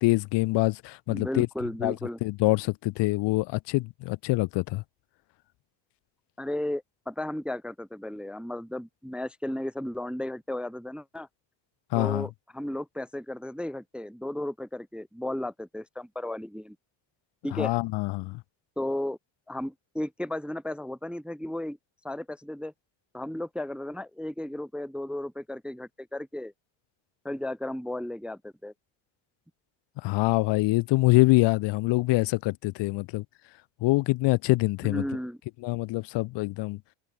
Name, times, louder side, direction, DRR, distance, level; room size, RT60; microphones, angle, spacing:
voice 1, 0.0-1.5 1.8-2.0 2.2-4.8 11.9-12.3 17.5-18.4 30.0-33.2 33.8-35.0 35.6-36.8, left 21 dB, 65° left, 0.5 m, -25 dB
voice 2, 1.1-2.2 6.4-11.3 11.9-16.8 17.4-17.7 18.8-19.2 19.5-21.8 22.0-22.7 23.1-26.5 27.2-28.7 34.8-35.4, left 1 dB, ahead, 0.4 m, -34 dB
supercardioid pair, 65°, 47 cm